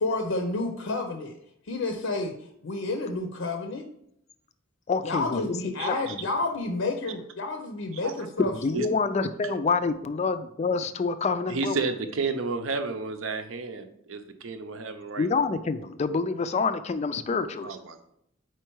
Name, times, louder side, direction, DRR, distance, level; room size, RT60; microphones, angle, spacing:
voice 1, 0.0-1.3 1.7-2.3 2.6-3.9 5.0-8.5, left 3 dB, 75° left, 5 dB, 0.6 m, -30 dB
voice 2, 4.9-6.3 8.4-11.8 15.2-17.7, left 4 dB, 30° left, 11 dB, 0.3 m, -27 dB
voice 3, 5.8-6.1 7.9-8.1 8.7-8.8 11.5-15.3 17.6-18.0, right 3 dB, 70° right, 8 dB, 0.6 m, -32 dB
4.7 x 4.5 x 4.6 m, 0.74 s
head